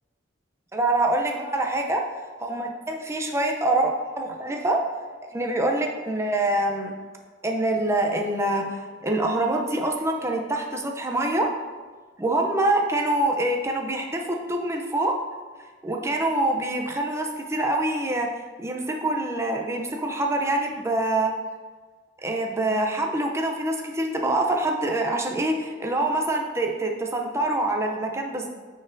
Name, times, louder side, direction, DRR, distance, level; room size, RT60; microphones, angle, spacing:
voice 1, 0.7-2.0 2.4-4.8 5.3-6.9 7.4-11.5 12.2-15.1 15.8-18.3 18.6-21.3 22.2-28.5, right 2 dB, 15° right, 2 dB, 0.5 m, -25 dB
9.1 x 4.3 x 2.6 m, 1.4 s
head